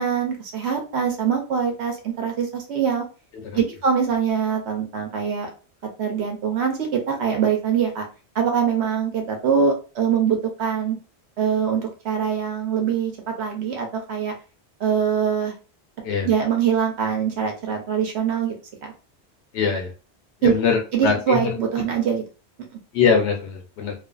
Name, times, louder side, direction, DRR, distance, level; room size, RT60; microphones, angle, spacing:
voice 1, 0.0-3.0 3.5-5.5 6.0-8.1 8.3-11.0 11.4-14.3 14.8-15.5 16.2-18.5 18.8-18.9 20.4-20.5 20.9-22.2, right 7 dB, 80° right, 3 dB, 0.9 m, -23 dB
voice 2, 19.5-19.9 20.4-21.5 22.9-23.9, left 5 dB, 85° left, 2 dB, 0.9 m, -22 dB
2.4 x 2.4 x 2.2 m, 0.34 s
omnidirectional pair, 1.1 m